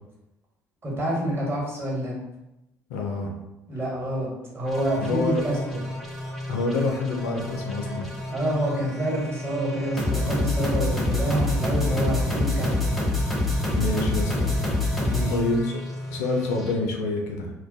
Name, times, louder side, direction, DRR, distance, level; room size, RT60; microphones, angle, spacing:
voice 1, 0.8-2.1 3.7-5.8 8.3-12.9 15.0-15.3, right 1 dB, 30° right, -4 dB, 1.1 m, -27 dB
voice 2, 2.9-3.3 5.0-5.4 6.5-8.1 13.8-14.5 15.3-15.7 16.1-17.5, left 2 dB, 75° left, 2 dB, 0.4 m, -27 dB
sound 1, 4.7-16.7, left 2 dB, ahead, 0.5 m, -27 dB
2.2 x 2.1 x 2.6 m, 0.93 s
hypercardioid pair, 55°, 9 cm